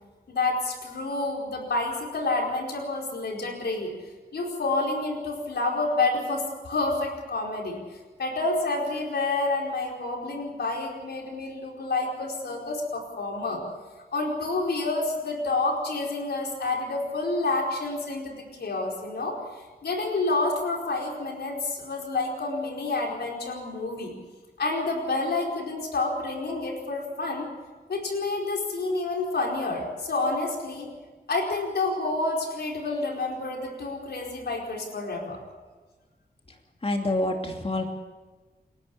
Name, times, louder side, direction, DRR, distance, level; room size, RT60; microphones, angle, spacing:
voice 1, 0.3-3.9 4.3-13.6 14.1-24.1 24.6-27.5 27.9-30.9 31.3-35.4, left 2 dB, 90° left, 0 dB, 4.7 m, -29 dB
voice 2, 36.8-37.9, left 1 dB, 35° left, 3 dB, 2.7 m, -27 dB
28.0 x 11.5 x 8.7 m, 1.3 s
cardioid pair, 60°, 17 cm